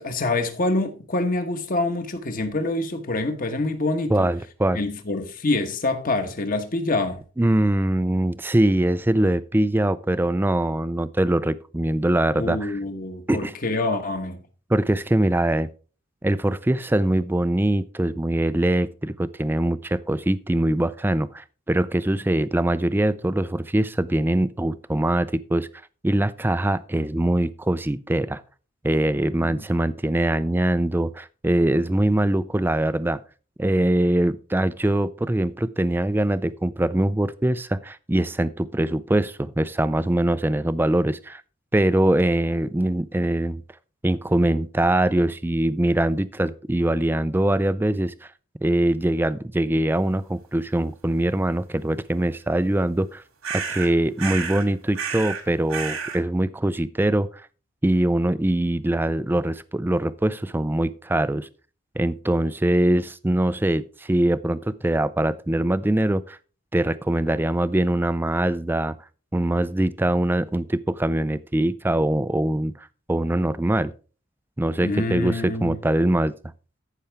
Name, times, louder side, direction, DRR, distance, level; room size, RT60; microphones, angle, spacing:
voice 1, 0.0-4.3 4.7-7.2 12.4-14.4 29.4-29.6 74.8-75.8, left 2 dB, 40° left, 1.2 m, -26 dB
voice 2, 4.1-4.8 7.4-12.8 13.3-13.5 14.7-15.7 16.2-25.7 26.0-28.4 28.8-33.2 33.6-41.4 41.7-43.6 44.0-48.1 48.6-53.2 53.5-57.3 57.8-61.5 62.0-66.4 66.7-69.0 69.3-73.9 74.6-76.3, right 1 dB, 10° right, 0.3 m, -23 dB
sound 1, 53.4-53.9 54.2-54.7 54.9-55.4 55.7-56.2, right 6 dB, 90° right, 2.0 m, -30 dB
14.0 x 5.7 x 3.4 m
head